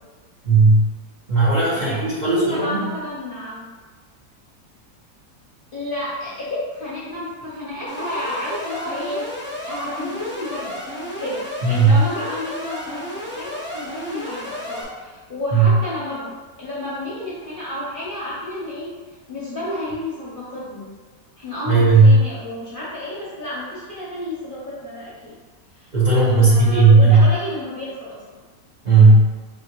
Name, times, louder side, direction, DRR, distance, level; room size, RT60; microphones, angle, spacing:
voice 1, 0.4-0.9 1.3-2.9 11.6-12.0 15.5-15.6 21.7-22.2 25.9-27.3 28.8-29.3, right 3 dB, 30° right, -9 dB, 1.0 m, -14 dB
voice 2, 1.7-3.7 5.7-9.3 9.7-10.8 11.0-16.3 16.6-18.9 19.3-20.9 21.4-25.3 25.7-28.2, left 1 dB, 45° left, -8 dB, 0.8 m, -31 dB
Alarm, 7.9-14.8, equal, 10° left, 0.6 m, -32 dB
4.7 x 3.1 x 2.9 m, 1.4 s
omnidirectional pair, 1.8 m